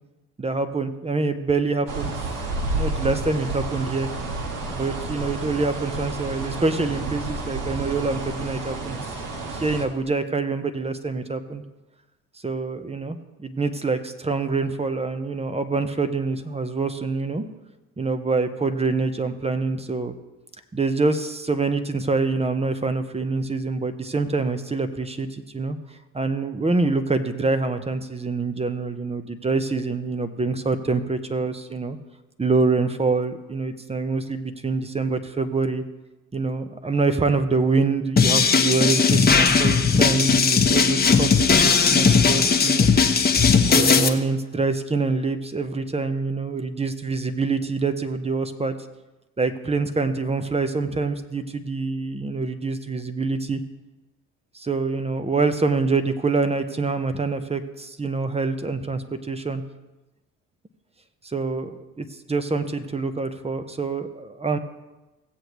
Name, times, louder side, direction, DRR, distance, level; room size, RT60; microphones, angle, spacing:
voice 1, 0.4-2.1 2.7-4.1 4.7-9.0 9.5-11.6 12.4-17.4 18.0-20.1 20.7-25.8 26.1-32.0 32.4-35.8 36.3-42.9 43.7-48.7 49.4-53.6 54.5-59.6 61.2-64.6, right 3 dB, 15° right, 9 dB, 0.9 m, -25 dB
sound 1, 1.9-9.8, right 2 dB, 55° right, 1.8 m, -30 dB
sound 2, 38.2-44.1, left 5 dB, 25° left, 1.0 m, -18 dB
16.5 x 7.8 x 3.2 m, 1.1 s
hypercardioid pair, 55°, 38 cm